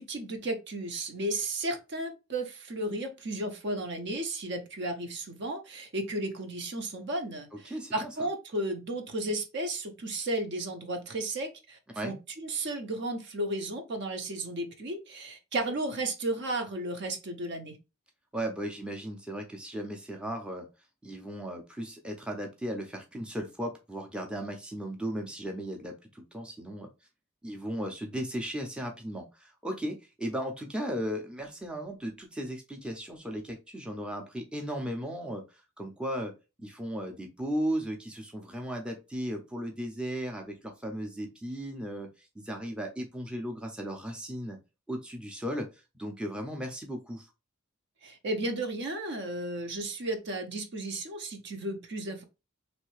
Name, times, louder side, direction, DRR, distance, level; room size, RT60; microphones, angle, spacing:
voice 1, 0.0-17.8 48.0-52.2, right 1 dB, 55° right, 6 dB, 0.6 m, -34 dB
voice 2, 7.5-8.1 11.9-12.2 18.3-20.7 21.0-26.9 27.4-36.3 36.6-44.6 44.9-45.7 45.9-47.3, equal, 5° right, 2 dB, 0.5 m, -36 dB
3.1 x 2.7 x 3.1 m, 0.27 s
head